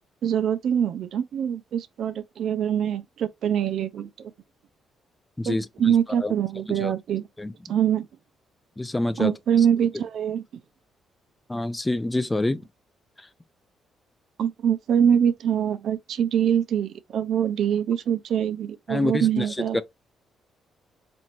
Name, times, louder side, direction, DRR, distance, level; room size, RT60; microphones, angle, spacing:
voice 1, 0.2-4.1 5.5-5.6 5.8-7.3 7.7-8.1 9.2-10.4 14.4-19.8, right 9 dB, 70° right, 0.4 m, -24 dB
voice 2, 5.4-6.3 6.7-6.9 7.4-7.5 8.8-9.7 11.5-12.7 13.2-13.3 18.9-19.8, left 2 dB, 15° left, 0.4 m, -27 dB
4.3 x 2.5 x 2.9 m
cardioid pair, 90°, 0 cm